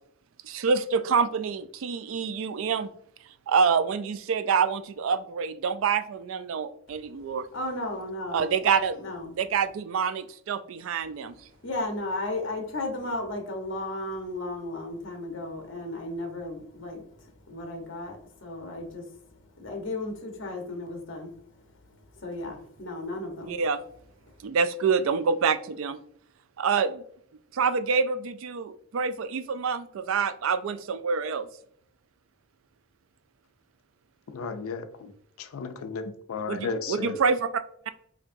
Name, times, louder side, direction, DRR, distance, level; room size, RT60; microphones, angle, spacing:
voice 1, 0.4-2.9 3.5-7.5 8.3-9.1 9.4-11.3 23.5-23.8 24.4-26.0 26.6-27.0 27.5-31.5 36.5-37.9, right 5 dB, 70° right, 0.3 m, -26 dB
voice 2, 6.9-8.4 9.0-9.3 11.6-23.6, left 2 dB, 60° left, 1.0 m, -35 dB
voice 3, 34.3-35.1 35.4-37.2, left 4 dB, 90° left, 0.4 m, -34 dB
5.1 x 2.8 x 2.6 m
head